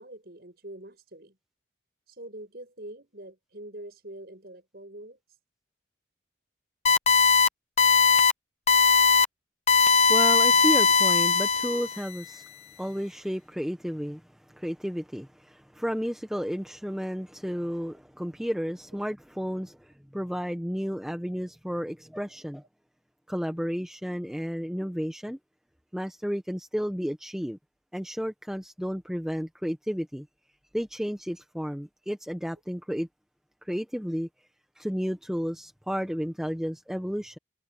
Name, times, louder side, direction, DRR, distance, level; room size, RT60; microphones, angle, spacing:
voice 1, 0.0-1.4 2.1-5.4, right 1 dB, 55° right, 7.9 m, -44 dB
sound 1, 6.9-7.5 7.8-8.3 8.7-9.3 9.7-12.0, left 5 dB, 35° left, 0.6 m, -20 dB
voice 2, 10.1-12.5 12.8-22.6 23.3-25.4 25.9-27.6 27.9-30.3 30.7-33.1 33.6-34.3 34.8-37.4, equal, 5° right, 0.9 m, -32 dB
head